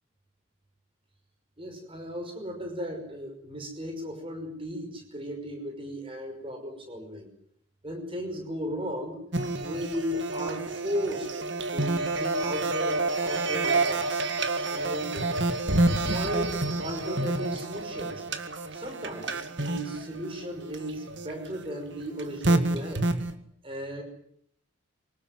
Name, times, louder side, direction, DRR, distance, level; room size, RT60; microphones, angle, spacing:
voice 1, 1.6-7.3 7.8-9.2 9.6-14.2 14.7-15.3 16.0-18.3 18.7-23.1 23.6-24.0, equal, 25° right, 4 dB, 5.6 m, -36 dB
sound 1, 9.3-23.3, right 2 dB, 60° right, 1.9 m, -29 dB
24.5 x 19.0 x 9.6 m, 0.69 s
head